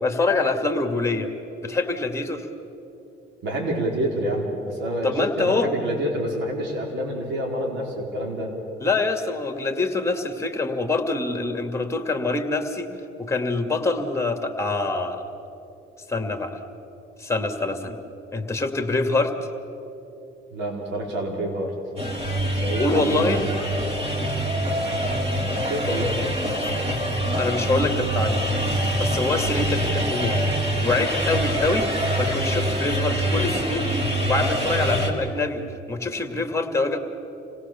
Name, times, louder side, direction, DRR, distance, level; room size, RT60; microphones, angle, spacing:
voice 1, 0.0-1.3 1.6-2.5 5.0-5.7 8.8-12.9 13.2-15.3 16.1-16.6 17.2-18.0 18.3-19.3 22.8-23.4 27.3-28.5 29.0-30.4 30.8-31.9 32.2-35.6 35.9-37.0, left 3 dB, 15° left, 5 dB, 2.4 m, -25 dB
voice 2, 3.4-8.5 20.5-21.8 22.5-23.4 25.3-26.2, right 1 dB, 70° right, 0 dB, 4.7 m, -28 dB
sound 1, 22.0-35.1, equal, 30° right, 3.8 m, -25 dB
27.0 x 17.5 x 7.1 m, 3.0 s
supercardioid pair, 80°, 19 cm